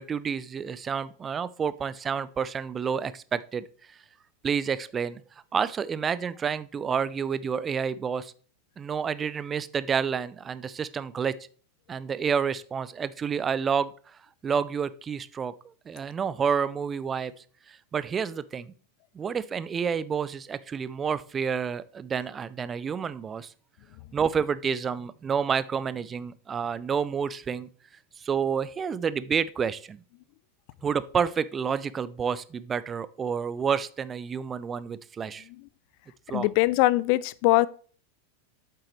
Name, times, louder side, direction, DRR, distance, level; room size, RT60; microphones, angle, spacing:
voice 1, 0.0-4.0 4.4-5.2 5.5-8.3 8.8-11.4 11.9-15.5 15.9-17.3 17.7-18.7 19.1-23.5 24.1-27.7 28.2-30.0 30.8-35.5 36.3-36.5, right 6 dB, 20° right, 0.5 m, -29 dB
voice 2, 36.3-37.7, left 19 dB, 45° left, 0.3 m, -22 dB
8.6 x 7.5 x 3.1 m
figure-of-eight pair, 90°, 0 cm